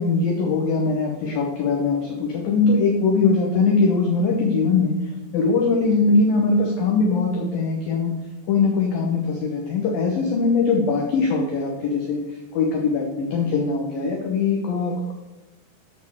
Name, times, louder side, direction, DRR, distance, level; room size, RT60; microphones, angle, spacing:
voice 1, 0.0-5.0 5.3-8.1 8.5-12.2 12.5-15.1, left 4 dB, 90° left, 0 dB, 2.0 m, -21 dB
9.1 x 5.2 x 6.7 m, 1.1 s
omnidirectional pair, 5.7 m